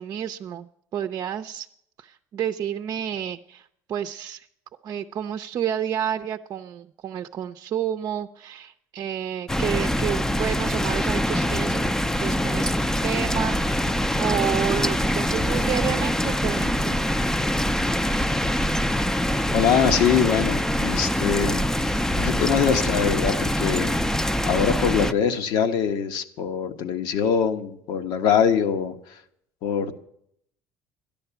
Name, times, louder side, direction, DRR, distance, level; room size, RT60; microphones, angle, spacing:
voice 1, 0.0-1.7 2.0-4.5 4.8-11.9 12.2-12.7 13.0-13.9 14.2-17.0, right 9 dB, 55° right, 7 dB, 0.6 m, -30 dB
sound 1, 9.5-25.1, equal, 5° left, 0.6 m, -24 dB
voice 2, 19.5-24.0 24.4-28.9 29.6-29.9, left 7 dB, 70° left, 8 dB, 1.2 m, -23 dB
13.0 x 10.5 x 6.9 m, 0.73 s
supercardioid pair, 85°, 8 cm